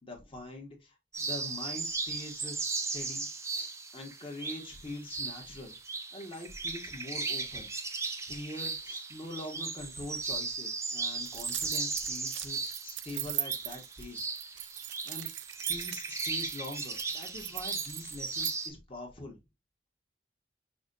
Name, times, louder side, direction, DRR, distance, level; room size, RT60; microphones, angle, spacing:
voice 1, 0.0-5.8 6.1-7.7 8.2-14.3 15.0-15.3 15.7-19.4, left 2 dB, 30° left, 1.3 m, -44 dB
sound 1, 1.1-18.7, right 4 dB, 15° right, 0.5 m, -37 dB
sound 2, 11.2-18.6, right 14 dB, 80° right, 0.4 m, -39 dB
6.0 x 2.9 x 2.5 m
head